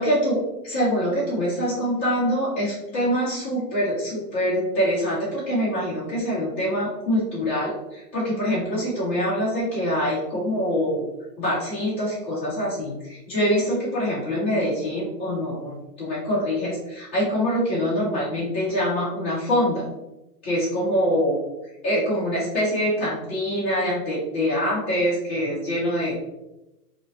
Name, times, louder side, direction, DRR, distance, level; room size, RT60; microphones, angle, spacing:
voice 1, 0.0-11.1 11.4-19.8 20.4-21.4 21.8-26.1, equal, 10° left, -14 dB, 0.5 m, -24 dB
4.0 x 2.8 x 2.8 m, 0.94 s
hypercardioid pair, 165°, 50 cm